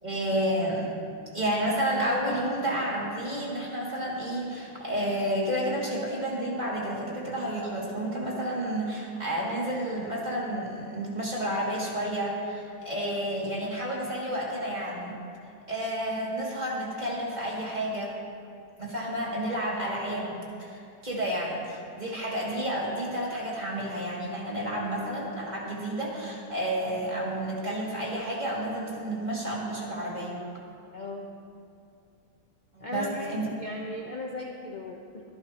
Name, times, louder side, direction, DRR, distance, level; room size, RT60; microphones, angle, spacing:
voice 1, 0.0-0.9 1.3-15.2 15.7-18.2 18.8-30.4 32.7-33.5, right 1 dB, 20° right, -5 dB, 2.7 m, -30 dB
voice 2, 30.9-31.3 32.8-35.2, left 2 dB, 35° left, -1 dB, 0.7 m, -37 dB
25.0 x 11.5 x 3.0 m, 2.4 s
omnidirectional pair, 2.2 m